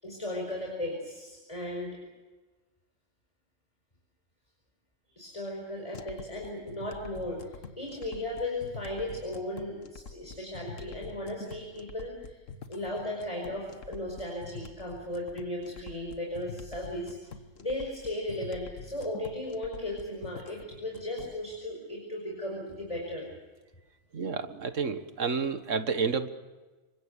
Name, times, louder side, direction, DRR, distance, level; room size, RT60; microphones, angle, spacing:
voice 1, 0.0-2.1 5.1-12.4 12.7-23.3, left 1 dB, 25° left, 0 dB, 5.4 m, -36 dB
sound 1, 5.9-21.4, left 5 dB, 90° left, 1.7 m, -46 dB
voice 2, 24.1-26.3, right 5 dB, 80° right, 10 dB, 1.8 m, -30 dB
27.5 x 24.5 x 6.8 m, 1.3 s
omnidirectional pair, 1.3 m